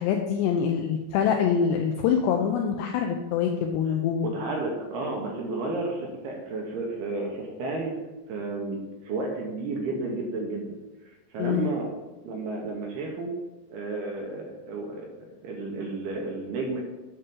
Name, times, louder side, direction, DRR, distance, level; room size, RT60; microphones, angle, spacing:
voice 1, 0.0-4.4 11.4-11.7, left 7 dB, 85° left, 3 dB, 2.4 m, -25 dB
voice 2, 4.3-8.0 8.3-10.7 11.3-11.9 12.2-13.3 13.7-16.8, right 3 dB, 70° right, 0 dB, 2.7 m, -32 dB
9.3 x 6.7 x 3.8 m, 1.1 s
omnidirectional pair, 5.5 m